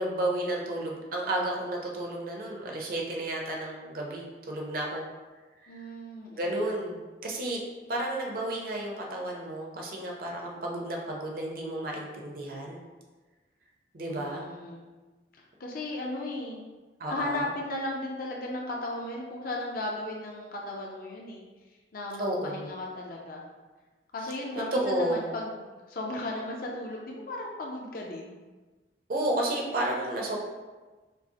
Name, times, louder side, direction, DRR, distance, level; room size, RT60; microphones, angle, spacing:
voice 1, 0.0-5.0 6.3-7.6 7.9-12.8 13.9-14.4 17.0-17.5 22.2-22.7 24.6-25.3 29.1-30.4, right 1 dB, 50° right, -1 dB, 0.6 m, -32 dB
voice 2, 5.7-6.7 14.1-14.8 15.6-16.6 17.1-21.4 21.9-23.5 24.1-28.4, left 1 dB, 50° left, -1 dB, 0.5 m, -36 dB
5.2 x 2.0 x 2.8 m, 1.3 s
head